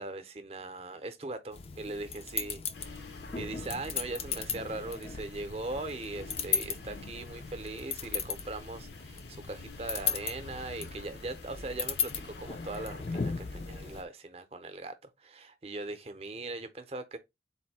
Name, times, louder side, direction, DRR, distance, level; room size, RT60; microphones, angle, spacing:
voice 1, 0.0-3.0 3.3-14.9 15.2-17.2, right 2 dB, 35° right, 0.6 m, -40 dB
sound 1, 1.5-14.0, left 5 dB, 35° left, 0.4 m, -37 dB
sound 2, 2.7-14.1, left 2 dB, 80° left, 0.8 m, -48 dB
4.1 x 2.6 x 4.1 m
head